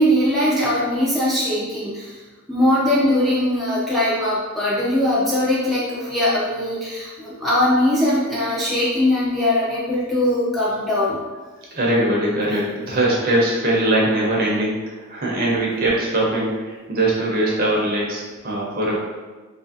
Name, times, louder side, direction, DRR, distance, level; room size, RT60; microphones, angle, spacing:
voice 1, 0.0-2.2 2.5-11.2, left 1 dB, ahead, -9 dB, 0.4 m, -20 dB
voice 2, 11.7-19.0, right 1 dB, 45° right, -4 dB, 0.7 m, -21 dB
2.8 x 2.5 x 2.7 m, 1.3 s
head